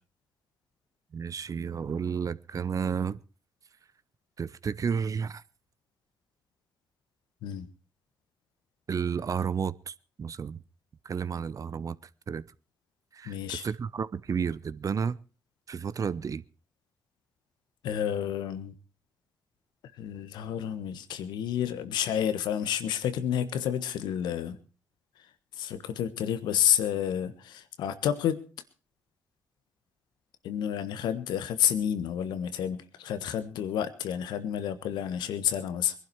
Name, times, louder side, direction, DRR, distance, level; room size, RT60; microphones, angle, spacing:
voice 1, 1.1-3.2 4.4-5.4 8.9-10.6 11.0-12.0 12.3-12.4 13.1-15.2 15.7-16.4, right 6 dB, 50° right, 0.8 m, -32 dB
voice 2, 13.2-13.6 17.8-18.7 20.0-24.6 25.5-28.4 30.4-35.9, left 9 dB, 80° left, 1.4 m, -30 dB
21.5 x 11.5 x 4.7 m
supercardioid pair, 50°, 7 cm